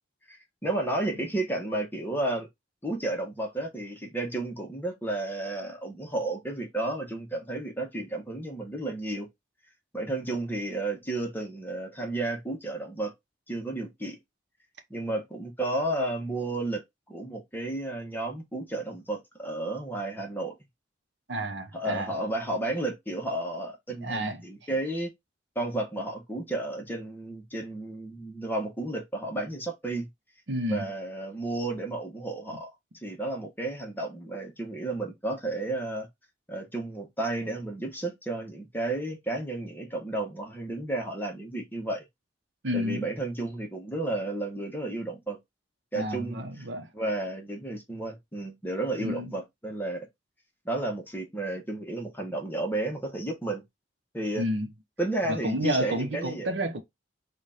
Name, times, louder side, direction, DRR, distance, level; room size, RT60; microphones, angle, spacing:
voice 1, 0.3-2.5 2.8-9.3 9.9-13.1 13.5-14.2 14.9-16.8 17.1-20.6 21.7-25.1 25.5-30.1 30.7-32.7 33.0-36.1 36.5-42.0 42.7-45.4 45.9-46.4 46.9-50.1 50.6-53.6 54.1-54.4 55.0-56.5, right 2 dB, 10° left, 1.1 m, -32 dB
voice 2, 21.3-22.1 24.0-24.4 24.7-24.8 30.5-30.9 42.6-43.1 45.9-46.9 49.0-49.3 54.4-54.7 55.3-56.8, equal, 75° right, 1.0 m, -30 dB
4.9 x 2.5 x 4.2 m
head